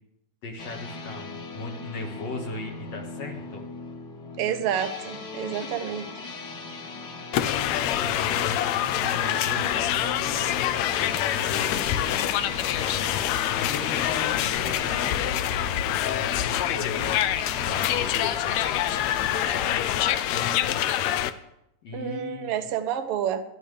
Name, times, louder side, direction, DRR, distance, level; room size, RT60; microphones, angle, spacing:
voice 1, 0.4-3.6 5.4-5.9 7.3-10.3 10.9-12.7 13.6-15.2 16.4-21.0 21.8-22.8, left 3 dB, 55° left, 2.7 m, -38 dB
sound 1, 0.6-19.3, left 3 dB, 40° left, 2.2 m, -40 dB
voice 2, 4.4-6.0 21.9-23.4, right 9 dB, 65° right, 1.5 m, -29 dB
sound 2, 7.3-21.3, left 11 dB, 75° left, 1.6 m, -26 dB
sound 3, 9.7-19.3, right 3 dB, 25° right, 0.9 m, -48 dB
21.5 x 12.0 x 3.4 m
omnidirectional pair, 3.7 m